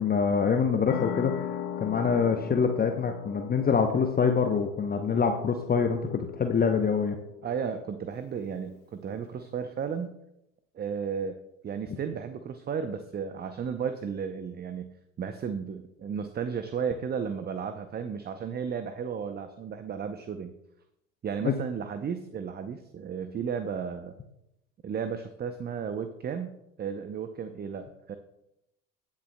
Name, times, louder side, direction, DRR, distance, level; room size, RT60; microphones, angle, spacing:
voice 1, 0.0-1.3 1.8-7.1 21.4-21.5, left 6 dB, 25° left, 5 dB, 0.8 m, -25 dB
sound 1, 0.9-8.1, left 9 dB, 55° left, 1.2 m, -39 dB
voice 2, 7.4-10.1 10.7-11.4 11.6-14.9 15.2-20.5 21.2-24.1 24.8-28.2, right 6 dB, 25° right, 9 dB, 0.6 m, -34 dB
18.5 x 7.2 x 2.2 m, 0.83 s
hypercardioid pair, 65°, 40 cm